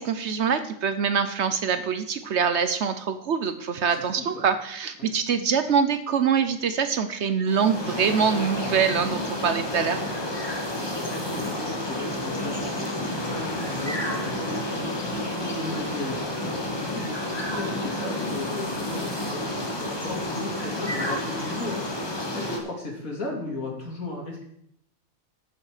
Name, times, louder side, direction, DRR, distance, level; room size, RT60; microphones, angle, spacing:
voice 1, 0.0-10.0, right 6 dB, 60° right, 10 dB, 0.9 m, -24 dB
voice 2, 3.8-4.5 5.0-5.1 10.8-21.8 22.3-24.4, left 2 dB, 75° left, -1 dB, 2.9 m, -36 dB
sound 1, 7.5-22.6, left 1 dB, 20° left, 1.3 m, -30 dB
14.0 x 5.6 x 4.9 m, 0.73 s
omnidirectional pair, 1.5 m